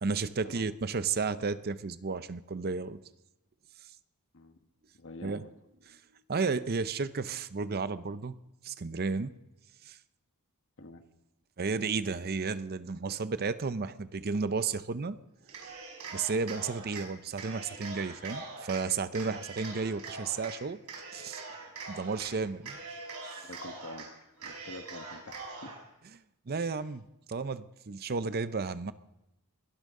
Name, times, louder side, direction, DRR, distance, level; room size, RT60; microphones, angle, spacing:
voice 1, 0.0-3.0 5.2-5.5 5.9-6.0 6.3-8.4 8.6-9.4 9.8-10.0 11.6-15.2 16.1-20.8 21.1-21.4 21.9-22.8 23.3-23.5 26.5-28.9, right 4 dB, 45° right, 13 dB, 0.6 m, -33 dB
voice 2, 4.3-4.6 5.0-5.5 10.8-11.0 23.4-25.8 26.7-26.8, left 2 dB, 60° left, 7 dB, 1.3 m, -47 dB
Cheering, 15.4-17.0 17.4-18.8 19.1-20.5 20.9-22.3 22.6-24.0 24.4-25.8, right 3 dB, 80° right, 5.6 m, -43 dB
22.5 x 12.0 x 3.7 m, 0.91 s
head